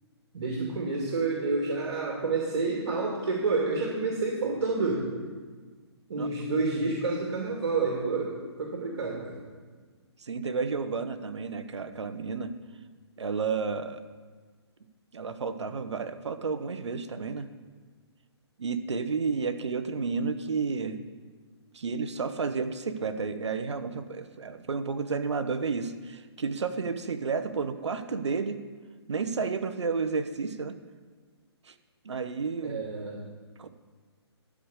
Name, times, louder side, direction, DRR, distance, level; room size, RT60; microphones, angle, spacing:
voice 1, 0.3-5.1 6.1-8.3 8.6-9.4 32.6-33.2, right 3 dB, 65° right, -2 dB, 2.4 m, -29 dB
voice 2, 10.2-12.5 13.2-14.0 15.1-17.5 18.6-21.0 21.7-28.6 29.1-30.7 31.7-31.8 32.0-32.8 33.6-33.7, right 5 dB, 80° right, 10 dB, 1.0 m, -31 dB
12.5 x 4.9 x 8.1 m, 1.5 s
hypercardioid pair, 150°, 14 cm